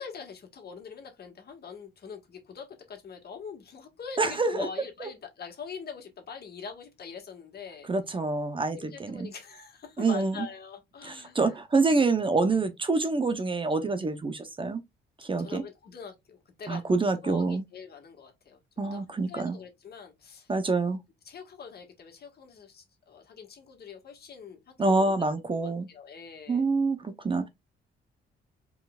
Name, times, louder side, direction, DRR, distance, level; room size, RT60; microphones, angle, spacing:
voice 1, 0.0-7.9 8.8-11.4 15.4-16.8 17.2-18.6 18.9-19.0 19.3-20.5 21.2-26.7, left 6 dB, 50° left, 1.7 m, -43 dB
voice 2, 4.2-4.7 5.0-5.1 7.8-9.3 10.0-10.5 11.0-14.8 15.2-15.6 16.7-17.6 18.8-19.6 20.5-21.0 24.8-25.9 26.5-27.5, right 3 dB, 25° right, 0.8 m, -26 dB
4.6 x 3.8 x 2.4 m
cardioid pair, 90°, 20 cm